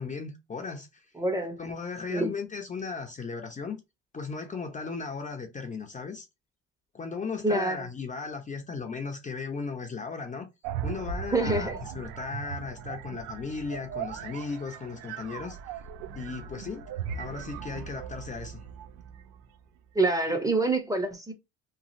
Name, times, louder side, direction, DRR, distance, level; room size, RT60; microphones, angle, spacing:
voice 1, 0.0-1.1 1.6-3.8 4.1-6.3 6.9-10.5 10.8-15.8 16.2-16.9 17.2-18.6, left 4 dB, 25° left, 0.6 m, -36 dB
voice 2, 1.2-1.6 2.1-2.3 7.4-7.8 11.3-11.8 19.9-21.3, right 2 dB, 10° right, 0.8 m, -26 dB
sound 1, 10.6-19.4, right 8 dB, 85° right, 0.5 m, -38 dB
3.1 x 2.3 x 2.6 m
supercardioid pair, 85°, 33 cm